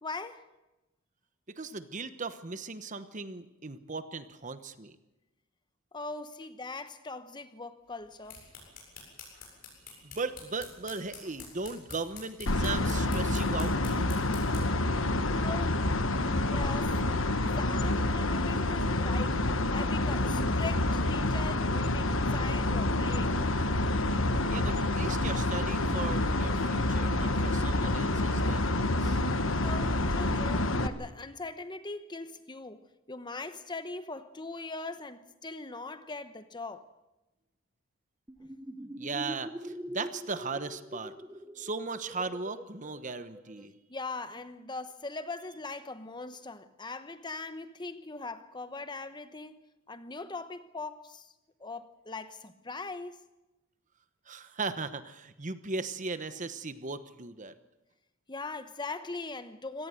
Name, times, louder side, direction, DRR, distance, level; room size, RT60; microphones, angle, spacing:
voice 1, 0.0-0.4 5.9-8.4 15.4-15.9 16.5-17.0 17.3-23.4 29.6-36.9 38.4-38.5 43.9-51.3 51.6-53.2 58.3-59.9, left 3 dB, 20° left, 0.9 m, -41 dB
voice 2, 1.5-5.0 10.0-14.1 16.2-16.5 24.5-29.2 39.0-41.1 41.5-43.7 54.3-57.5, right 4 dB, 35° right, 1.1 m, -38 dB
sound 1, 8.0-14.8, left 5 dB, 45° left, 7.9 m, -49 dB
sound 2, 12.5-30.9, left 2 dB, 65° left, 1.3 m, -28 dB
sound 3, 38.3-43.7, right 1 dB, 10° right, 1.0 m, -43 dB
25.5 x 18.0 x 7.8 m
head